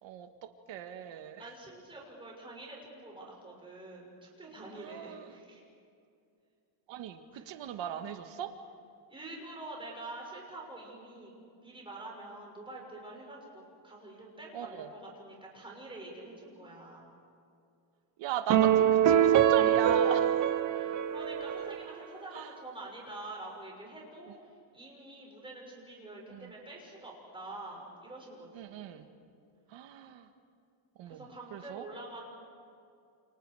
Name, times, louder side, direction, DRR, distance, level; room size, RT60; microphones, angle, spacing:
voice 1, 0.0-1.5 4.7-5.4 6.9-8.5 14.5-14.9 18.2-20.5 22.3-22.5 26.3-26.5 28.5-29.1 29.7-30.3 31.0-31.8, right 8 dB, 80° right, 7 dB, 1.7 m, -39 dB
voice 2, 1.4-5.6 7.3-7.4 9.1-11.3 11.6-17.0 20.0-20.1 20.7-28.9 31.1-32.3, right 2 dB, 10° right, -2 dB, 6.8 m, -46 dB
sound 1, 18.5-22.0, right 10 dB, 40° right, 1.0 m, -24 dB
29.5 x 29.0 x 4.9 m, 2.5 s
cardioid pair, 160°, 44 cm